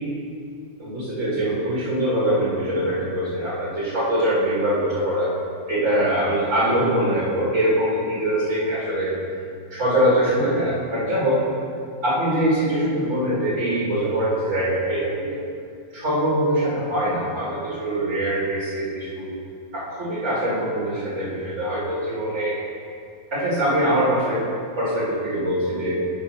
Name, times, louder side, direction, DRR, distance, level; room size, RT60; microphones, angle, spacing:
voice 1, 0.8-5.4 5.7-9.2 9.7-11.4 12.0-15.4 15.9-19.3 19.7-22.6 23.3-24.4 24.8-26.1, right 1 dB, 55° right, -7 dB, 0.8 m, -23 dB
9.4 x 4.2 x 5.9 m, 2.4 s
omnidirectional pair, 4.3 m